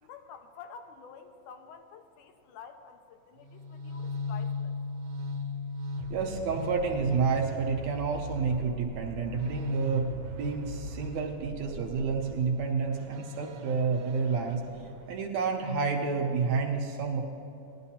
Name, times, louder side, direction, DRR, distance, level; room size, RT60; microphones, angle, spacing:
voice 1, 0.0-4.8, left 6 dB, 85° left, 6 dB, 2.1 m, -49 dB
sound 1, 3.4-15.3, left 1 dB, 90° right, 2.3 m, -38 dB
voice 2, 6.1-10.1 10.4-14.6 15.1-17.2, right 5 dB, 70° right, 1 dB, 2.0 m, -29 dB
18.0 x 11.0 x 2.8 m, 2.6 s
omnidirectional pair, 3.6 m